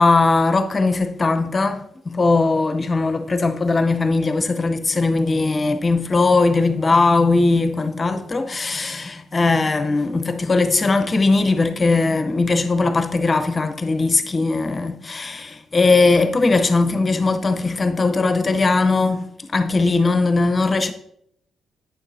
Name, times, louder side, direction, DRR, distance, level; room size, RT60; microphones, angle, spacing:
voice 1, 0.0-20.9, left 3 dB, 35° left, 0.7 m, -19 dB
9.0 x 7.0 x 2.7 m
cardioid pair, 80°, 0 cm